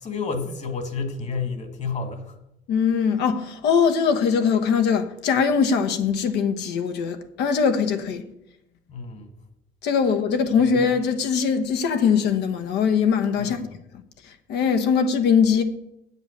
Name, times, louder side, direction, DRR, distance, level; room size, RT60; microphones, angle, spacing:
voice 1, 0.0-2.4 8.9-9.3 13.4-13.7, left 4 dB, 45° left, 2.0 m, -30 dB
voice 2, 2.7-8.3 9.8-13.6 14.2-15.6, left 6 dB, 80° left, 1.1 m, -21 dB
8.1 x 8.1 x 6.5 m
cardioid pair, 110°, 17 cm